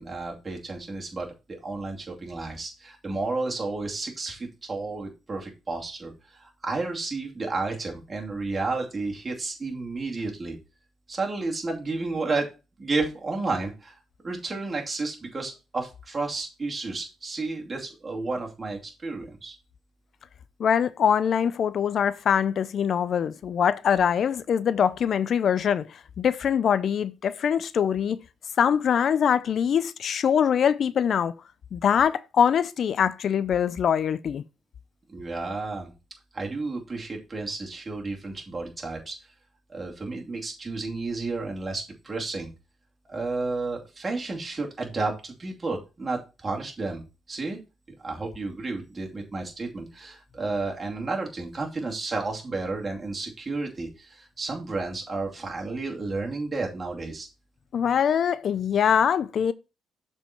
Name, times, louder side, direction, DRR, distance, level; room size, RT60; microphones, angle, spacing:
voice 1, 0.0-10.6 11.1-12.5 12.8-13.9 14.2-19.5 35.1-35.9 36.3-39.1 39.7-42.5 43.1-47.0 47.3-47.6 48.0-57.3, right 3 dB, 30° right, 2.5 m, -32 dB
voice 2, 20.6-25.9 26.2-28.2 28.6-31.3 31.7-34.4 57.7-59.5, left 8 dB, 60° left, 0.4 m, -23 dB
7.0 x 4.4 x 4.4 m
cardioid pair, 90°, 0 cm